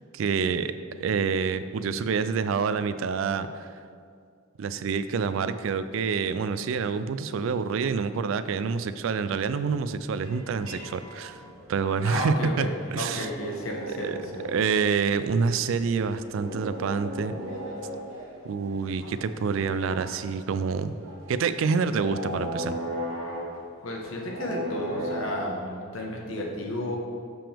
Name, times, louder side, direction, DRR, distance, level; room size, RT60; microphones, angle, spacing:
voice 1, 0.1-0.7 1.0-3.7 4.6-11.4 11.7-13.3 13.9-14.2 14.4-17.3 18.4-21.0 21.3-22.8, right 5 dB, 70° right, 12 dB, 0.3 m, -27 dB
sound 1, 10.2-25.5, equal, 85° right, 1.2 m, -38 dB
voice 2, 12.0-12.7 13.0-14.5 23.8-27.0, left 1 dB, 80° left, -1 dB, 1.1 m, -32 dB
7.0 x 5.9 x 3.4 m, 2.2 s
head